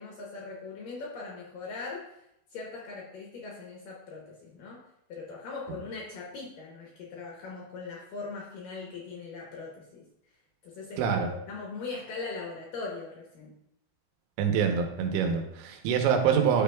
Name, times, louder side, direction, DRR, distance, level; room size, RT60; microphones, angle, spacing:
voice 1, 0.0-2.1 2.5-4.8 5.1-10.0 10.6-13.5, left 4 dB, 70° left, -2 dB, 2.2 m, -40 dB
voice 2, 11.0-11.3 14.4-16.6, right 7 dB, 90° right, 4 dB, 3.2 m, -25 dB
10.5 x 6.9 x 2.3 m, 0.79 s
omnidirectional pair, 5.1 m